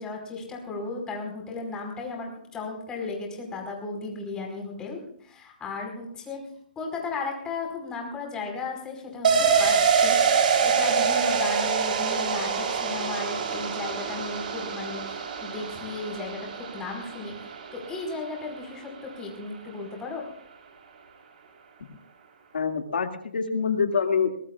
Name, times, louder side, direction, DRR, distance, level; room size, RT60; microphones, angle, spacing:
voice 1, 0.0-6.4 6.7-15.0 15.4-17.4 17.7-20.3, left 3 dB, 15° left, 0 dB, 5.0 m, -35 dB
sound 1, 9.2-18.6 19.0-19.1, right 6 dB, 60° right, 3.9 m, -25 dB
voice 2, 22.5-24.4, left 5 dB, 90° left, 5 dB, 2.3 m, -25 dB
22.5 x 21.0 x 2.4 m, 0.64 s
hypercardioid pair, 150°, 5 cm